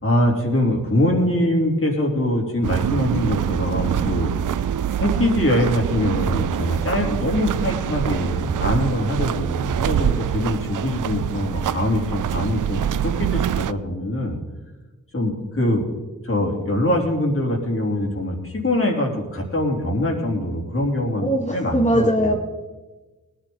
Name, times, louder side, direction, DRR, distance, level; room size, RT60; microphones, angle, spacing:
voice 1, 0.0-4.3 5.0-14.4 15.1-15.8 16.2-22.3, left 1 dB, 40° left, 0 dB, 3.3 m, -23 dB
sound 1, 2.6-13.7, right 10 dB, 65° right, 0.5 m, -25 dB
voice 2, 21.2-22.3, equal, 20° left, -2 dB, 2.0 m, -22 dB
18.5 x 10.5 x 3.9 m, 1.2 s
cardioid pair, 45°, 34 cm